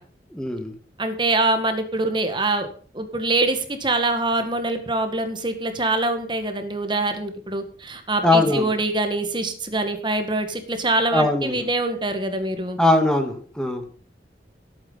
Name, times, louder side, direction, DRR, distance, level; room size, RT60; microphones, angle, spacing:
voice 1, 0.3-0.7 8.2-8.7 11.1-11.6 12.8-13.8, left 2 dB, 5° left, 5 dB, 1.8 m, -20 dB
voice 2, 1.0-2.7 2.9-12.8, right 2 dB, 25° right, 7 dB, 1.9 m, -24 dB
17.5 x 9.0 x 5.6 m, 0.43 s
head